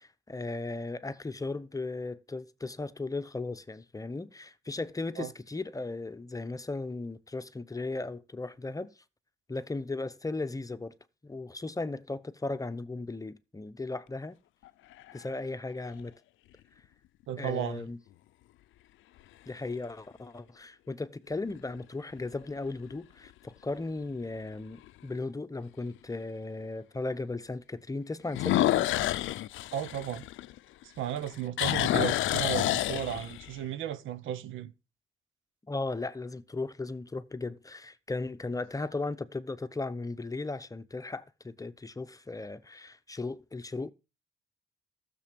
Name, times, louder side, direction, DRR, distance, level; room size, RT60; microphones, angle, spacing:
voice 1, 0.0-8.9 9.5-10.9 11.2-14.4 15.1-16.1 17.4-18.0 19.5-28.9 31.6-31.7 35.7-43.9, left 3 dB, 15° left, 0.8 m, -36 dB
sound 1, 14.7-15.3 16.0-16.1 21.3-21.8 22.3-22.4 22.9-23.0 23.3-23.4 24.9-25.0 28.3-30.8 31.2-33.5, left 15 dB, 80° left, 0.5 m, -29 dB
voice 2, 17.3-17.9 29.7-30.2 30.8-34.7, right 10 dB, 80° right, 1.1 m, -34 dB
14.0 x 6.9 x 5.3 m
cardioid pair, 90°, 20 cm